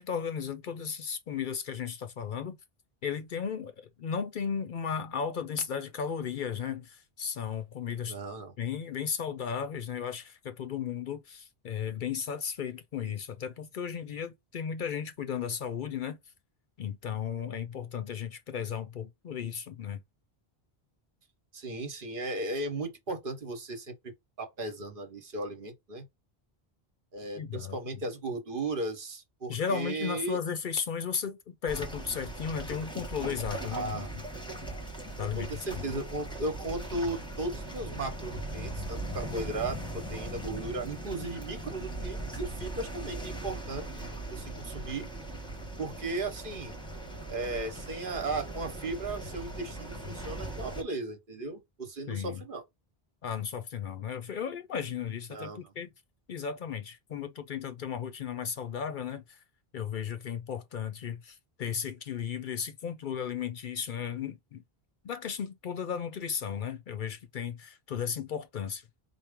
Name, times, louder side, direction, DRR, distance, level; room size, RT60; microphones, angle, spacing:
voice 1, 0.0-2.6 3.0-8.2 8.6-16.2 16.8-20.0 27.4-28.0 29.5-34.1 35.1-35.8 52.1-52.4 53.2-55.9 56.3-59.4 59.7-64.6 65.0-68.8, left 7 dB, 60° left, 0.7 m, -35 dB
voice 2, 8.1-8.5 21.5-24.1 24.4-26.0 27.1-30.4 33.7-34.1 35.2-45.1 45.8-46.7 47.3-52.6 55.3-55.7, right 2 dB, 60° right, 1.1 m, -36 dB
sound 1, 31.7-50.8, right 1 dB, 5° left, 0.8 m, -39 dB
4.4 x 2.1 x 3.5 m
omnidirectional pair, 1.0 m